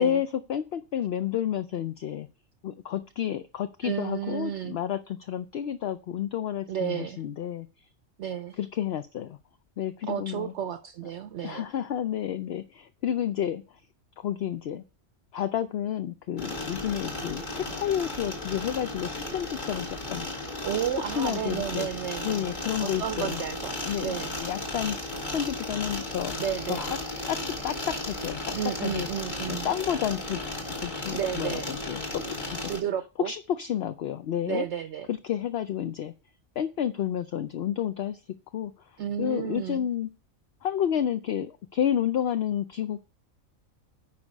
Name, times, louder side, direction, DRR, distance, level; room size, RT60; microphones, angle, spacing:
voice 1, 0.0-2.3 2.6-7.7 8.6-9.4 9.8-10.5 11.4-13.6 14.2-14.8 15.3-20.3 21.0-21.9 22.2-23.4 23.8-25.0 25.3-26.3 26.7-27.0 27.3-28.5 28.8-29.1 29.5-30.4 30.8-32.2 32.6-32.7 33.2-34.6 35.1-36.1 36.6-38.2 38.5-40.1 40.6-43.0, left 10 dB, 60° left, 10 dB, 0.7 m, -30 dB
voice 2, 3.8-4.8 6.7-7.2 8.2-8.6 10.1-11.6 20.6-24.4 26.4-26.9 28.5-29.7 31.1-31.8 32.7-33.3 34.5-35.1 39.0-39.9, right 9 dB, 65° right, 11 dB, 0.8 m, -32 dB
sound 1, 16.4-32.8, left 2 dB, 35° left, 2.0 m, -35 dB
9.6 x 5.0 x 5.3 m, 0.32 s
omnidirectional pair, 1.4 m